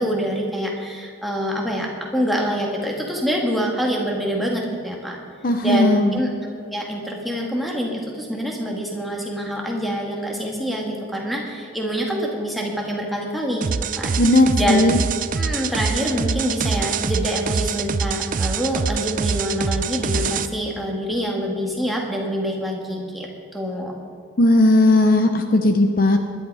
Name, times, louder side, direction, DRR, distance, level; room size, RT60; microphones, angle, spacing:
voice 1, 0.0-5.2 5.6-13.7 14.0-14.2 14.6-15.0 15.4-23.9, equal, ahead, -1 dB, 2.0 m, -25 dB
voice 2, 5.4-6.1 14.2-14.9 24.4-26.2, left 1 dB, 45° left, 6 dB, 0.8 m, -16 dB
sound 1, 13.6-20.5, right 5 dB, 40° right, 0.4 m, -24 dB
20.5 x 11.0 x 4.9 m, 2.4 s
head